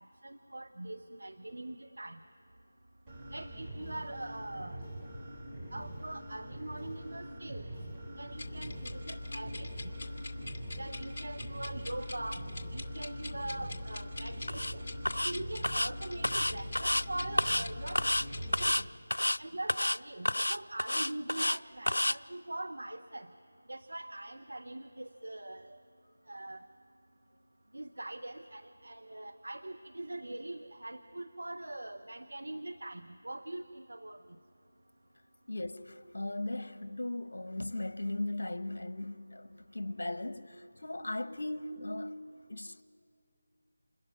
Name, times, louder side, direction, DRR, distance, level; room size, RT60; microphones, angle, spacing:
voice 1, 0.0-2.2 3.3-4.8 5.7-7.7 8.2-9.7 10.8-12.4 12.7-14.9 15.2-18.0 18.6-18.8 19.4-23.3 23.7-25.8 26.3-26.7 27.7-34.2, right 1 dB, 75° right, 1.0 m, -42 dB
sound 1, 3.1-18.7, right 1 dB, 15° right, 4.0 m, -44 dB
sound 2, 8.3-18.7, left 2 dB, 40° left, 2.5 m, -43 dB
sound 3, 14.5-14.7 15.1-15.3 15.6-15.9 16.2-17.0 17.4-17.7 18.0-18.3 18.5-18.8 19.1-19.4 19.7-20.0 20.3-21.6 21.9-22.2, left 1 dB, 90° left, 0.5 m, -29 dB
voice 2, 35.5-42.1 42.5-42.8, left 2 dB, 70° left, 1.3 m, -38 dB
28.5 x 28.0 x 5.9 m
figure-of-eight pair, 165°, 0 cm